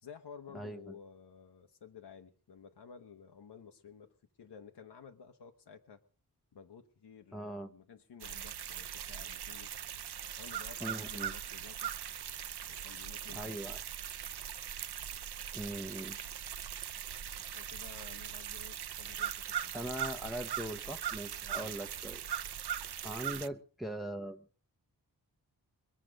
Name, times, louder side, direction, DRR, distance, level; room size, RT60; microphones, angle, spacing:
voice 1, 0.0-4.1 4.4-6.0 6.5-9.7 10.3-11.9 12.6-13.6 17.2-19.9 21.5-21.7, left 7 dB, 85° left, 4 dB, 1.2 m, -53 dB
voice 2, 0.5-0.9 7.3-7.7 10.8-11.3 13.3-13.8 15.5-16.2 19.7-22.2 23.0-24.4, right 1 dB, ahead, 4 dB, 0.9 m, -41 dB
sound 1, 8.2-23.5, right 9 dB, 75° right, 0.7 m, -40 dB
22.5 x 7.6 x 6.4 m, 0.42 s
wide cardioid pair, 120°, 39 cm